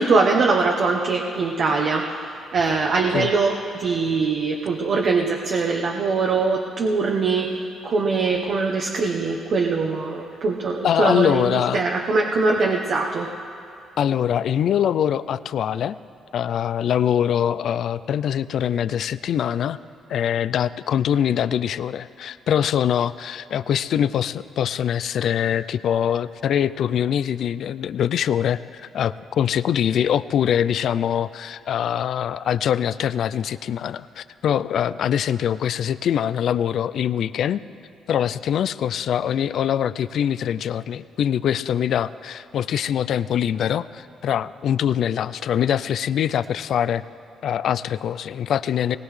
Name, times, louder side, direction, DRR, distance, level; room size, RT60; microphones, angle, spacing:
voice 1, 0.0-13.3, right 4 dB, 60° right, 1 dB, 1.0 m, -22 dB
voice 2, 10.8-11.8 14.0-16.0 16.3-19.8 20.1-37.6 38.1-47.0 47.4-49.0, left 9 dB, 70° left, 15 dB, 0.4 m, -23 dB
20.0 x 18.5 x 3.2 m, 2.5 s
cardioid pair, 90°, 0 cm